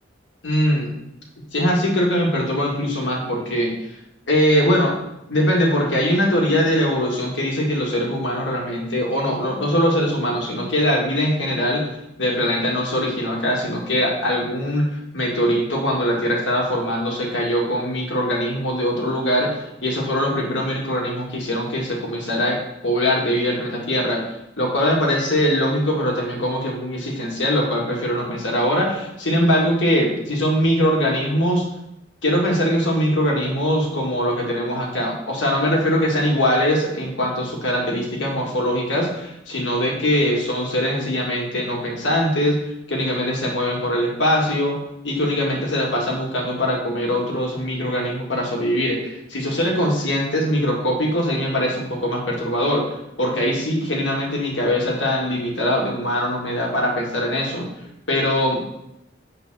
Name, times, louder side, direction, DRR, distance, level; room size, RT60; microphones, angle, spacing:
voice 1, 0.4-0.9 1.5-3.7 4.3-4.9 5.3-11.8 12.2-24.2 24.6-31.7 32.2-42.6 42.9-44.7 45.0-57.7 58.1-58.6, equal, 80° left, -1 dB, 1.7 m, -22 dB
6.9 x 3.6 x 6.0 m, 0.86 s
head